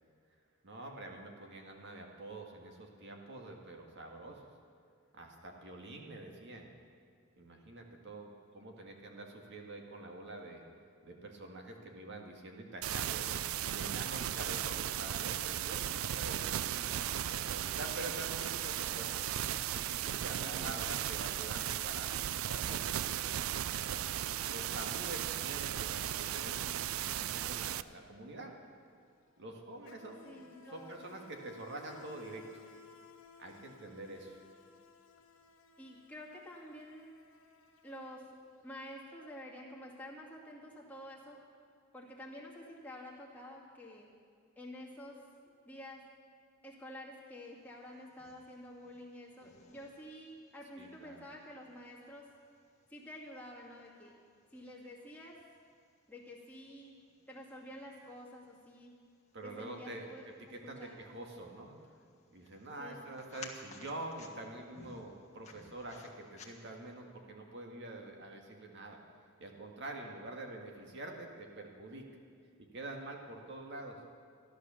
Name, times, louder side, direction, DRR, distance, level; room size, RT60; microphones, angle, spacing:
voice 1, 0.6-4.5 5.1-6.7 7.4-10.6 11.0-13.4 13.7-19.1 19.7-23.4 23.9-24.0 24.4-28.5 29.4-30.4 30.7-32.6 33.4-34.4 50.8-51.2 59.3-61.7 62.3-69.0 69.4-72.1 72.7-74.0, right 2 dB, 60° right, 2 dB, 1.8 m, -46 dB
sound 1, 12.8-27.8, right 11 dB, 80° right, 0.4 m, -36 dB
voice 2, 20.4-20.8 30.2-31.0 35.8-37.1 37.8-38.3 38.6-41.4 41.9-44.1 44.6-45.2 45.6-46.0 46.6-52.3 52.9-54.1 54.5-55.4 56.1-57.0 57.3-58.9 59.4-60.3 60.6-61.0 62.8-63.1, left 1 dB, 10° left, -4 dB, 2.3 m, -49 dB
Insect, 27.2-27.3 27.6-38.6, left 5 dB, 70° left, 1.5 m, -58 dB
sound 2, 47.6-67.0, left 4 dB, 35° left, 1.5 m, -59 dB
14.0 x 11.0 x 7.0 m, 2.2 s
head